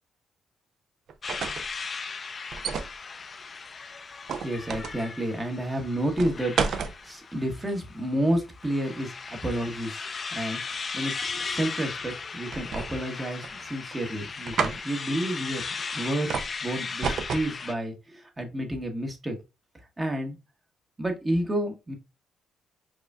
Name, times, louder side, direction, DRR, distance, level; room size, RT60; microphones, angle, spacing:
sound 1, 1.1-1.7 2.5-2.9 4.3-5.0 6.2-6.9 12.5-13.1 13.4-14.0 14.5-14.8 16.3-16.5 17.0-17.5, right 6 dB, 65° right, 0.4 m, -30 dB
sound 2, 1.2-17.7, left 5 dB, 40° left, 0.4 m, -37 dB
voice 1, 4.4-10.1 10.3-10.6 10.9-15.6 15.9-16.3 16.6-19.4 20.0-20.4 21.0-21.9, right 1 dB, 20° right, 3 dB, 1.0 m, -30 dB
4.7 x 2.5 x 2.3 m, 0.26 s
cardioid pair, 85°, 0 cm